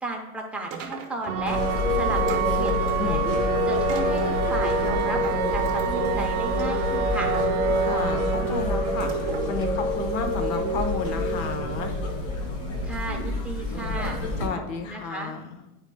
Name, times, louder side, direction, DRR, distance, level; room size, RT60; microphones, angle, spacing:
voice 1, 0.0-1.6 1.9-3.3 3.7-7.3 12.8-14.2 14.8-15.3, right 2 dB, 5° right, -1 dB, 0.6 m, -34 dB
sound 1, 0.7-1.5 2.3-3.2 3.7-4.4 5.2-6.2 6.8-6.9 7.3-8.2 8.8-9.5, right 7 dB, 35° right, 0.8 m, -38 dB
sound 2, 1.3-9.6, right 8 dB, 70° right, 0.6 m, -29 dB
sound 3, 1.5-14.5, left 1 dB, 60° left, 2.2 m, -26 dB
voice 2, 3.0-3.3 7.8-9.1 9.5-11.9 14.4-15.5, left 5 dB, 40° left, 6 dB, 0.9 m, -32 dB
8.8 x 4.8 x 2.2 m, 0.95 s
supercardioid pair, 130°, 44 cm